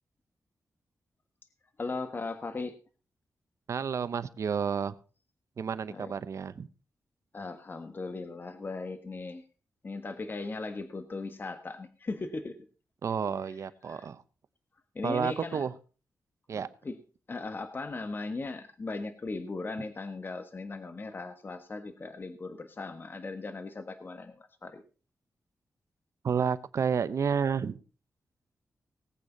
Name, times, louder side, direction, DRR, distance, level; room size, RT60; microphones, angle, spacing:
voice 1, 1.8-2.8 5.9-6.1 7.3-9.4 9.8-12.6 13.5-13.6 13.9-14.1 14.9-15.6 16.5-17.0 17.3-24.8, left 3 dB, 40° left, 9 dB, 1.5 m, -38 dB
voice 2, 3.7-4.9 5.6-6.7 13.0-14.2 15.0-15.7 16.5-16.7 26.2-27.8, right 6 dB, 65° right, 14 dB, 0.9 m, -30 dB
19.5 x 8.5 x 4.0 m, 0.36 s
cardioid pair, 95°, 6 cm